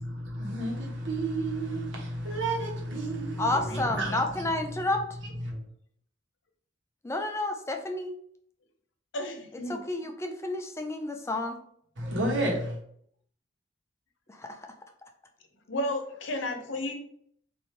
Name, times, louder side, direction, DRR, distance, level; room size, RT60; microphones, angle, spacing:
voice 1, 0.0-4.5 5.4-5.6 12.0-12.8, right 1 dB, 70° right, 1.2 m, -31 dB
voice 2, 3.4-5.0 7.0-8.1 9.7-11.6 14.3-14.7, left 2 dB, 15° left, 0.4 m, -30 dB
voice 3, 9.1-9.8 15.7-16.9, left 1 dB, 75° left, 0.8 m, -33 dB
3.3 x 2.6 x 4.3 m
head